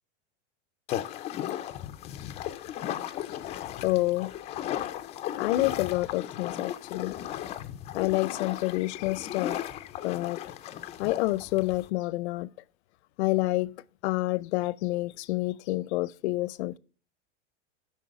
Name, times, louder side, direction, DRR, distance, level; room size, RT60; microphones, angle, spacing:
sound 1, 0.9-11.9, left 11 dB, 20° left, 0.3 m, -36 dB
voice 1, 3.5-4.3 5.4-7.1 7.9-9.6 10.0-10.4 11.0-12.5 13.2-13.7 14.0-16.8, left 19 dB, 70° left, 0.6 m, -28 dB
9.1 x 5.9 x 4.7 m
supercardioid pair, 140°, 35 cm